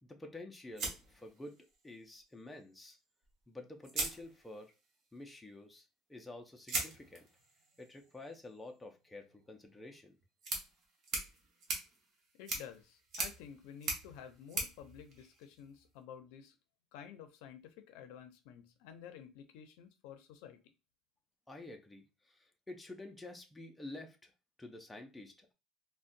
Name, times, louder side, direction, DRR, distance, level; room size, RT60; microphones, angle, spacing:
voice 1, 0.0-3.0 3.5-4.7 5.1-7.3 7.8-10.2 21.5-24.3 24.6-25.5, left 2 dB, 5° left, 0.4 m, -50 dB
sound 1, 0.8-1.9 3.2-3.3 3.8-4.9 6.7-15.9, right 3 dB, 40° right, 0.9 m, -42 dB
voice 2, 12.3-16.6 16.9-20.6, left 8 dB, 80° left, 0.5 m, -52 dB
3.8 x 2.1 x 2.5 m
cardioid pair, 175°, 0 cm